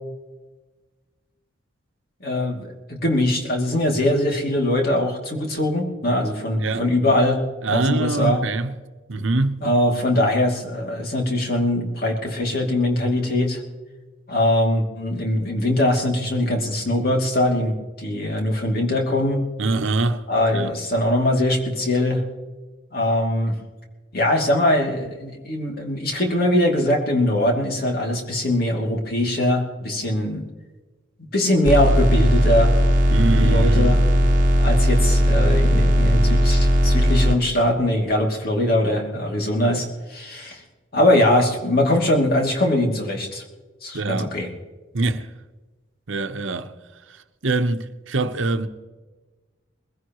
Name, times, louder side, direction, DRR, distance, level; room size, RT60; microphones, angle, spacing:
voice 1, 2.2-7.4 7.7-8.4 9.6-13.6 14.3-19.4 20.3-22.2 22.9-23.6 24.1-30.4 31.3-32.7 33.4-34.0 34.6-40.6 40.9-43.4 43.8-44.5, left 1 dB, 50° left, 2.7 m, -21 dB
voice 2, 7.6-8.7 9.1-9.6 19.6-20.3 20.5-20.7 33.1-34.0 43.9-44.3 44.9-45.3 46.1-46.7 47.1-47.2 47.4-48.7, right 3 dB, 75° right, 1.0 m, -23 dB
sound 1, 31.6-37.3, equal, 45° right, 1.2 m, -17 dB
21.5 x 16.0 x 3.1 m
head